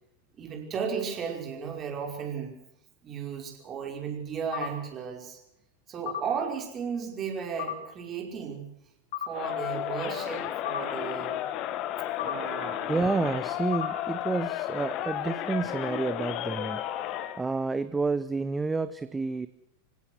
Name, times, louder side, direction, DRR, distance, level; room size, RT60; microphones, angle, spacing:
voice 1, 0.4-2.6 3.0-5.4 5.9-8.7 9.2-11.5 12.2-13.3, right 6 dB, 25° right, 3 dB, 5.2 m, -35 dB
sound 1, 4.5-4.7 6.1-6.2 7.6-7.8 9.1-9.3 10.7-10.8 12.2-12.4 13.7-13.9, left 10 dB, 55° left, 4.7 m, -33 dB
Crowd, 9.3-17.4, left 12 dB, 35° left, 1.7 m, -33 dB
voice 2, 12.9-19.5, right 3 dB, 10° right, 14 dB, 0.9 m, -30 dB
26.0 x 17.0 x 6.3 m, 0.79 s
figure-of-eight pair, 90°, 0 cm